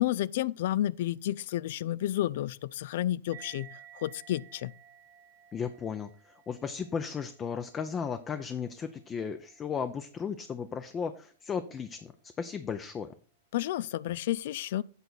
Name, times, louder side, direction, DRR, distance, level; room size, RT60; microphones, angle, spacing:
voice 1, 0.0-4.7 13.5-14.8, left 13 dB, 65° left, 0.3 m, -31 dB
sound 1, 3.3-10.2, right 10 dB, 50° right, 1.3 m, -55 dB
voice 2, 5.5-12.1 12.4-13.1, left 6 dB, 25° left, 0.6 m, -35 dB
8.0 x 3.9 x 6.3 m
hypercardioid pair, 115°, 0 cm